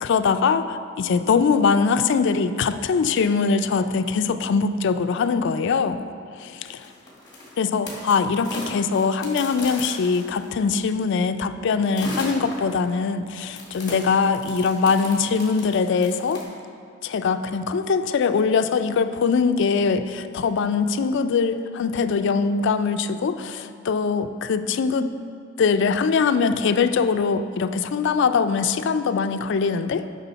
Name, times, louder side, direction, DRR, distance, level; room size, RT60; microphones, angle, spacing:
voice 1, 0.0-6.1 6.4-6.8 7.6-16.4 17.0-25.1 25.6-30.1, left 5 dB, 60° left, 11 dB, 0.4 m, -22 dB
sound 1, 6.6-10.7 11.9-12.8 13.5-16.4, left 1 dB, 20° left, 2.0 m, -37 dB
9.8 x 6.1 x 4.0 m, 2.3 s
head